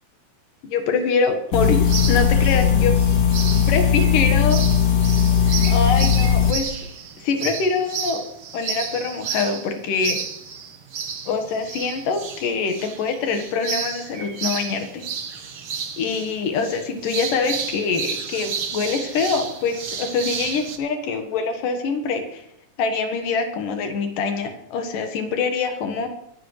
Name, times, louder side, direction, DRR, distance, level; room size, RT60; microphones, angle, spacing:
voice 1, 0.6-2.9 3.7-4.6 5.7-6.7 7.2-8.2 8.5-10.2 11.3-15.1 16.0-22.4 22.8-26.1, left 4 dB, 75° left, 5 dB, 3.1 m, -24 dB
sound 1, 1.5-6.5, left 8 dB, 50° left, 1.3 m, -18 dB
sound 2, 1.6-20.8, right 6 dB, 55° right, 1.6 m, -32 dB
23.0 x 12.0 x 3.3 m, 0.77 s
omnidirectional pair, 3.9 m